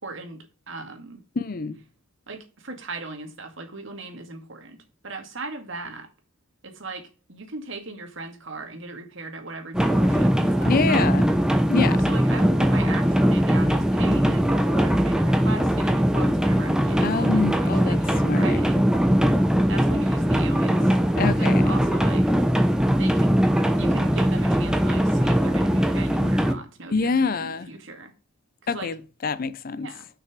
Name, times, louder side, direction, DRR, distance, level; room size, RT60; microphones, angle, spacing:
voice 1, 0.0-1.2 2.3-6.1 6.6-11.1 12.1-18.9 19.7-22.3 23.0-23.3 23.8-28.1 28.6-28.9 29.8-30.1, right 3 dB, 65° right, 2.1 m, -38 dB
voice 2, 1.4-1.8 10.7-11.3 11.7-12.0 17.0-18.6 21.2-21.7 26.9-27.7 28.7-29.9, left 4 dB, 45° left, 0.5 m, -26 dB
sound 1, 9.7-26.5, equal, 5° right, 0.9 m, -21 dB
6.6 x 6.1 x 7.3 m
head